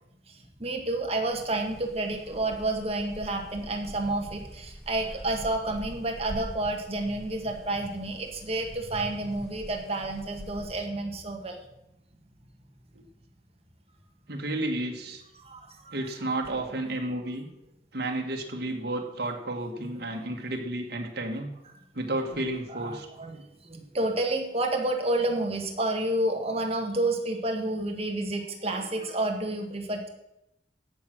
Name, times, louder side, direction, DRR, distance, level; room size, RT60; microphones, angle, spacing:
voice 1, 0.3-11.6 15.4-16.0 20.1-20.4 22.7-30.1, right 2 dB, 35° right, 2 dB, 1.8 m, -30 dB
sound 1, 1.3-10.8, equal, 5° left, 1.0 m, -45 dB
voice 2, 14.3-15.2 15.9-17.5 17.9-21.5 21.9-23.1, right 1 dB, 65° right, 1 dB, 1.8 m, -32 dB
16.0 x 6.4 x 6.1 m, 0.87 s
head